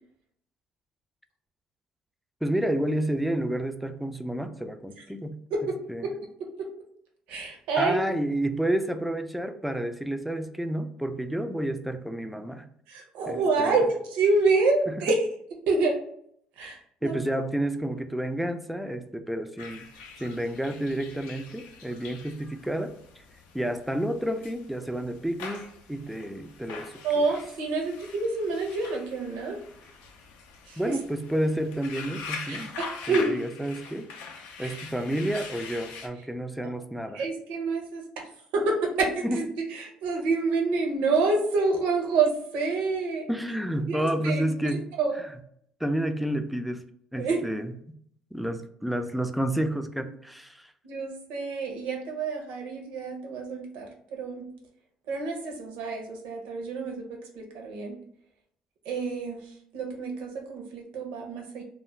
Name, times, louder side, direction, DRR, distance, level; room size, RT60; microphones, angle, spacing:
voice 1, 2.4-5.3 5.9-6.0 7.8-12.7 13.3-13.8 17.0-19.9 20.2-23.2 23.5-27.3 30.8-32.7 33.1-34.1 34.6-37.2 39.2-39.4 43.3-44.8 45.8-46.8 47.1-47.7 48.3-50.7, right 1 dB, ahead, 7 dB, 0.3 m, -30 dB
voice 2, 7.3-8.0 12.9-15.3 15.7-16.0 16.6-17.1 27.0-29.6 30.7-30.9 32.5-33.4 34.6-34.8 37.1-38.0 38.5-43.3 43.9-44.5 45.0-45.2 47.2-47.6 50.8-54.5 55.1-58.0 58.8-61.6, right 3 dB, 80° right, 1 dB, 0.6 m, -28 dB
sound 1, 19.6-36.1, left 5 dB, 85° left, 0.4 m, -43 dB
2.4 x 2.1 x 3.1 m, 0.67 s
supercardioid pair, 80°, 2 cm